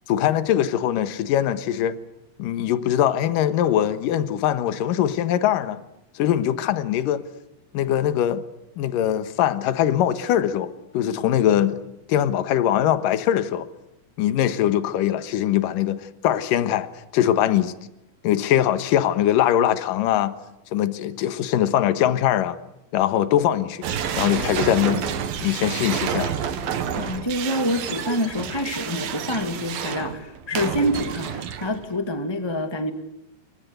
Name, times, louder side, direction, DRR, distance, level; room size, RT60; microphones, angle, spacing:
voice 1, 0.1-2.0 2.4-5.8 6.1-7.2 7.7-8.4 8.8-11.8 12.1-13.7 14.2-16.9 17.1-17.7 18.2-20.3 20.7-22.6 22.9-23.8 24.2-25.0 25.4-26.3, left 11 dB, 70° left, 2.9 m, -22 dB
sound 1, 23.8-32.0, right 8 dB, 80° right, 3.6 m, -29 dB
voice 2, 27.0-32.9, equal, 10° left, 1.3 m, -26 dB
29.0 x 24.5 x 8.2 m
omnidirectional pair, 4.1 m